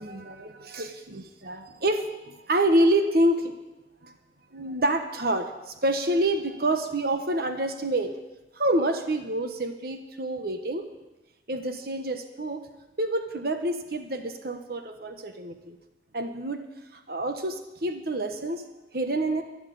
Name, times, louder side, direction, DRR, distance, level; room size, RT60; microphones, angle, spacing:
voice 1, 0.0-3.5 4.0-4.1 4.5-8.1 8.5-10.9 11.5-12.7 13.0-15.8 16.1-16.6 16.9-18.6 18.9-19.4, right 1 dB, 55° right, 7 dB, 1.2 m, -27 dB
12.0 x 11.0 x 9.4 m, 1.1 s
head